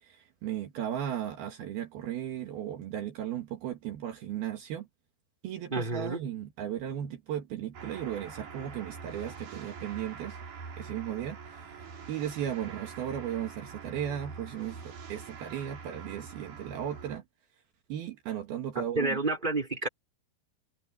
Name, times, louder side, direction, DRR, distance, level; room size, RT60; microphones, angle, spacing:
voice 1, 0.0-4.9 5.4-10.4 10.8-11.7 12.1-17.2 17.9-19.2, right 10 dB, 70° right, 3.5 m, -36 dB
voice 2, 5.7-6.3 18.7-19.9, right 2 dB, 10° right, 5.9 m, -30 dB
sound 1, 7.7-17.2, right 5 dB, 50° right, 4.7 m, -45 dB
omnidirectional pair, 4.8 m